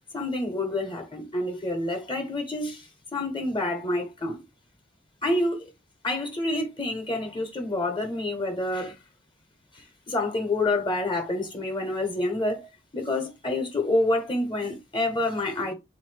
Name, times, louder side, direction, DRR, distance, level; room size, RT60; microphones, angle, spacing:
voice 1, 0.1-2.8 3.1-4.4 5.2-5.6 6.0-8.9 10.1-12.7 12.9-15.7, left 2 dB, 25° left, 0.9 m, -27 dB
4.0 x 2.6 x 3.2 m
head